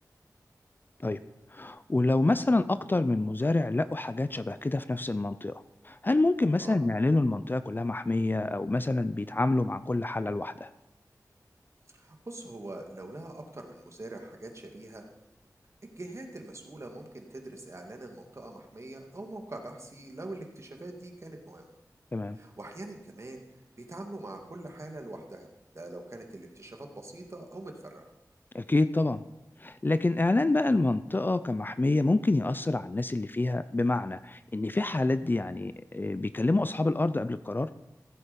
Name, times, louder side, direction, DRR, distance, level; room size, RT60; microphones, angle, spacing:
voice 1, 1.5-10.7 22.1-22.4 28.5-29.2 29.6-37.7, left 2 dB, 30° left, 13 dB, 0.4 m, -27 dB
voice 2, 11.9-15.1 16.0-21.7 22.3-23.4 23.8-25.5 25.7-28.0, right 2 dB, 50° right, 2 dB, 2.1 m, -43 dB
15.0 x 8.3 x 5.3 m, 0.92 s
wide cardioid pair, 70°, 7 cm